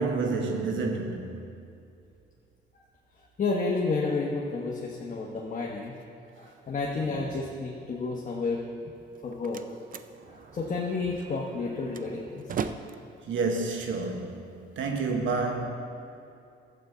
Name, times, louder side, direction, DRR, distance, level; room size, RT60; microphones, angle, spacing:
voice 1, 0.0-1.6 6.4-6.5 7.0-7.3 13.3-15.7, right 3 dB, 75° right, 3 dB, 1.2 m, -30 dB
voice 2, 3.4-5.9 6.4-8.6 9.2-9.6 10.3-12.5, left 3 dB, 40° left, -2 dB, 1.1 m, -31 dB
Slam, 9.0-14.9, right 6 dB, 45° right, 0.5 m, -40 dB
12.5 x 8.2 x 3.9 m, 2.6 s
cardioid pair, 90°, 20 cm